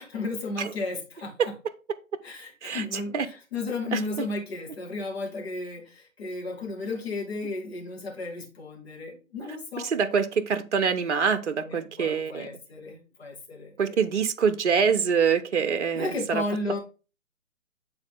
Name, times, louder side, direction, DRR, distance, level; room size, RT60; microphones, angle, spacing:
voice 1, 0.0-1.5 2.2-9.9 11.6-14.1 15.9-16.8, left 3 dB, 45° left, 2.2 m, -34 dB
voice 2, 2.6-3.3 3.9-4.0 9.8-12.5 13.8-16.4, right 6 dB, 60° right, 0.7 m, -25 dB
8.8 x 3.9 x 3.7 m
figure-of-eight pair, 145°, 42 cm